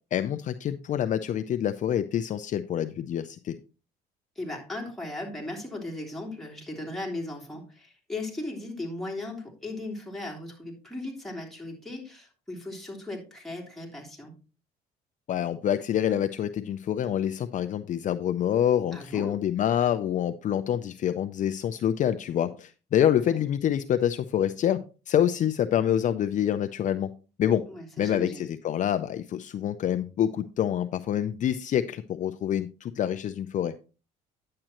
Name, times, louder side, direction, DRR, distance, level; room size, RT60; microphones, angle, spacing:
voice 1, 0.1-3.6 15.3-24.8 25.1-27.1 27.4-27.6 28.0-33.7, left 10 dB, 50° left, 10 dB, 0.5 m, -26 dB
voice 2, 4.4-14.3 18.9-19.4 27.7-28.5, left 2 dB, ahead, -2 dB, 3.1 m, -37 dB
10.0 x 7.6 x 2.9 m, 0.33 s
cardioid pair, 110°, 17 cm